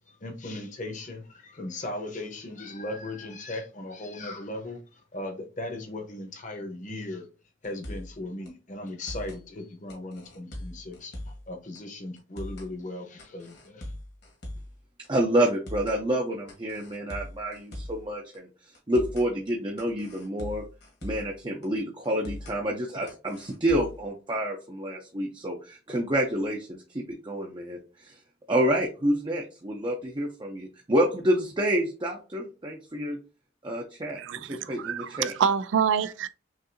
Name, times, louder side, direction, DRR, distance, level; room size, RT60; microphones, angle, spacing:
voice 1, 0.0-7.3 7.6-13.9, left 2 dB, 40° left, 1.0 m, -38 dB
sound 1, 7.6-8.2 8.5-8.6 8.9-9.4 9.9-11.5 11.7-11.8 12.2-12.7 13.2-14.8 15.0-15.1 15.5-16.0 16.5-18.0 18.3-18.4 18.7-19.3 19.8-21.3 21.6-21.7 22.0-22.6 23.1-24.0, left 1 dB, 60° left, 1.5 m, -40 dB
voice 2, 15.1-18.5 18.9-20.6 21.0-28.2 28.5-33.2 33.6-35.3, right 1 dB, 25° right, 0.6 m, -28 dB
voice 3, 34.2-36.3, right 7 dB, 70° right, 0.3 m, -27 dB
6.3 x 2.6 x 2.7 m
head